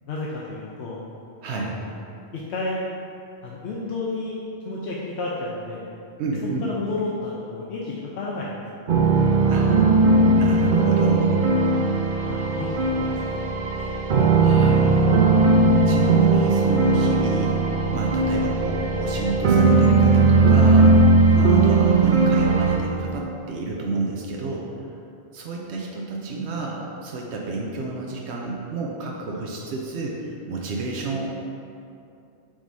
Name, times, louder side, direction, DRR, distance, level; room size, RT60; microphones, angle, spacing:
voice 1, 0.1-1.0 1.5-1.9 2.3-2.8 3.4-4.4 4.6-5.9 6.6-8.5 12.3-13.7 21.8-22.0, left 3 dB, 85° left, -4 dB, 0.9 m, -31 dB
voice 2, 1.4-1.7 6.2-6.7 9.5-9.7 10.4-11.3 14.4-15.0 15.9-17.6 17.9-20.9 21.3-24.7 25.3-31.3, right 3 dB, 90° right, -1 dB, 0.9 m, -30 dB
sound 1, 8.9-22.8, right 3 dB, 55° right, 0.6 m, -18 dB
7.1 x 4.9 x 2.7 m, 2.6 s
omnidirectional pair, 1.1 m